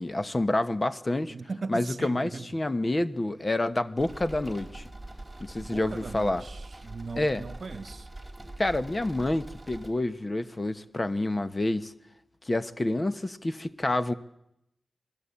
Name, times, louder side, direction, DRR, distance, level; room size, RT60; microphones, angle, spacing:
voice 1, 0.0-1.3 1.7-4.9 5.4-6.4 7.1-7.5 8.6-11.9 12.4-14.1, left 2 dB, 25° left, 11 dB, 1.1 m, -28 dB
voice 2, 1.3-2.5 5.6-8.1, right 4 dB, 55° right, 12 dB, 1.3 m, -39 dB
sound 1, 4.0-9.9, right 2 dB, 5° right, 4.3 m, -43 dB
27.0 x 19.5 x 8.6 m, 0.82 s
wide cardioid pair, 105°, 0 cm